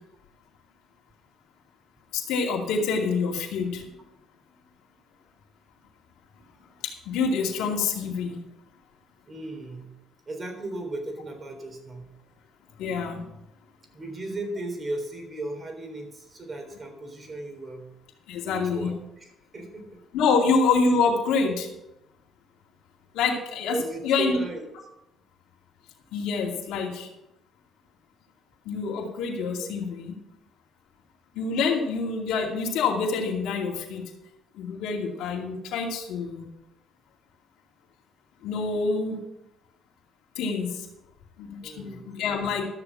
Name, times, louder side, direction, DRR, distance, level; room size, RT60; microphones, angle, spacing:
voice 1, 2.1-3.8 6.8-8.4 12.8-13.2 18.3-18.9 20.1-21.7 23.1-23.8 24.0-24.4 26.1-27.1 28.7-30.1 31.3-34.0 34.5-36.5 38.4-39.2 40.4-40.9 41.4-42.6, left 4 dB, 80° left, -1 dB, 2.4 m, -26 dB
voice 2, 9.2-9.9 10.3-12.1 13.9-17.9 18.5-20.0 23.7-24.6 41.6-42.0, right 2 dB, 35° right, 4 dB, 3.7 m, -36 dB
13.0 x 7.0 x 6.1 m, 0.87 s
cardioid pair, 85°, 0 cm